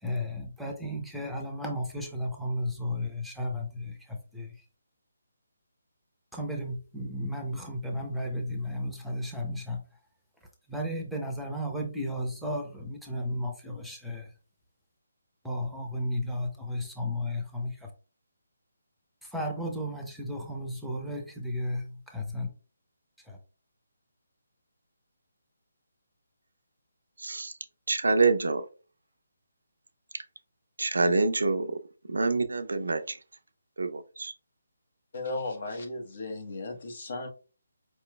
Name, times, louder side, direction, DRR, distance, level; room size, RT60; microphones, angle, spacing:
voice 1, 0.0-4.6 6.3-9.8 10.7-14.3 15.4-17.9 19.2-22.5 23.2-23.4, left 1 dB, ahead, 0 dB, 0.7 m, -34 dB
voice 2, 27.2-27.5 27.9-28.6 30.8-31.7 32.1-33.0 33.8-34.3, right 3 dB, 80° right, 9 dB, 0.5 m, -26 dB
voice 3, 35.1-37.3, left 2 dB, 55° left, 4 dB, 1.0 m, -35 dB
4.9 x 3.0 x 2.2 m, 0.36 s
figure-of-eight pair, 155°, 0 cm